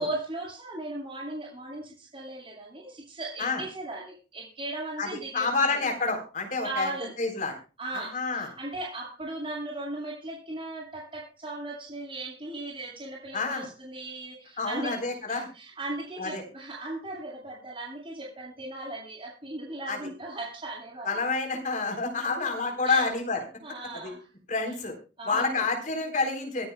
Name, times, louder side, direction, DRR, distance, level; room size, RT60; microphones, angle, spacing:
voice 1, 0.0-5.5 6.6-7.1 7.8-15.0 15.3-21.2 22.8-23.1 23.6-24.3 25.2-25.7, right 2 dB, 30° right, -6 dB, 6.4 m, -37 dB
voice 2, 5.0-6.9 7.2-7.5 7.9-8.5 13.3-13.6 14.6-15.5 16.2-16.4 19.9-20.0 21.0-23.4 24.0-24.1 24.5-24.9 25.3-26.7, left 3 dB, 45° left, 3 dB, 3.9 m, -28 dB
25.5 x 10.0 x 2.3 m, 0.33 s
head